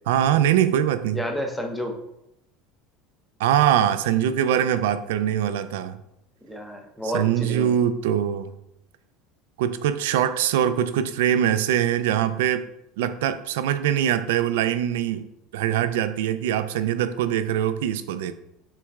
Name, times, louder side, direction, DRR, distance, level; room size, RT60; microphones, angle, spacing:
voice 1, 0.1-1.2 3.4-6.0 7.0-8.5 9.6-12.6 13.0-18.3, right 10 dB, 85° right, 12 dB, 0.3 m, -23 dB
voice 2, 1.1-2.0 6.4-7.8, equal, ahead, 2 dB, 0.7 m, -30 dB
6.0 x 2.2 x 3.5 m, 0.82 s
supercardioid pair, 120°, 0 cm